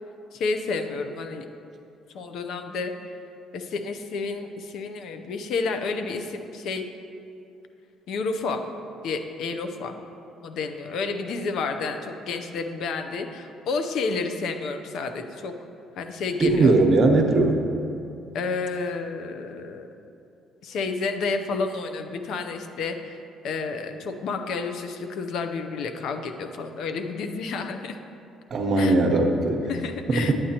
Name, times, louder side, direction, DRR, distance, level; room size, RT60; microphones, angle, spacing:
voice 1, 0.3-1.4 2.1-2.9 3.5-6.8 8.1-8.6 9.0-10.0 10.4-15.5 16.0-16.8 18.3-19.9 20.6-28.0 28.8-29.0 29.7-30.3, left 4 dB, 70° left, 7 dB, 0.6 m, -30 dB
voice 2, 16.4-17.6 28.5-29.7 30.1-30.3, right 2 dB, 50° right, 3 dB, 0.9 m, -19 dB
9.6 x 8.7 x 2.9 m, 2.7 s
cardioid pair, 85°, 0 cm